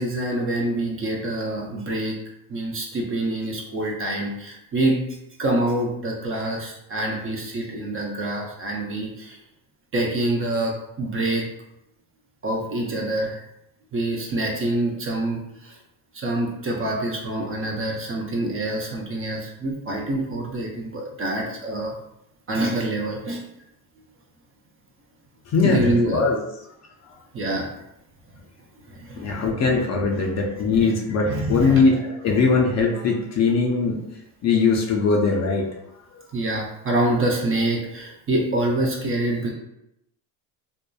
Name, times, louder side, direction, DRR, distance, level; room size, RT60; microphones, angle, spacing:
voice 1, 0.0-2.2 2.5-5.0 5.4-9.4 9.9-11.4 12.4-13.4 13.9-15.7 16.1-21.9 22.5-23.4 25.6-26.3 27.3-27.7 28.9-29.5 30.1-30.2 30.8-30.9 31.2-31.8 32.3-32.4 36.3-39.5, right 1 dB, 30° right, -1 dB, 0.5 m, -26 dB
voice 2, 25.5-26.4 29.2-34.0 34.4-35.6, left 4 dB, 35° left, 0 dB, 0.5 m, -20 dB
2.7 x 2.2 x 2.2 m, 0.83 s
supercardioid pair, 85°, 46 cm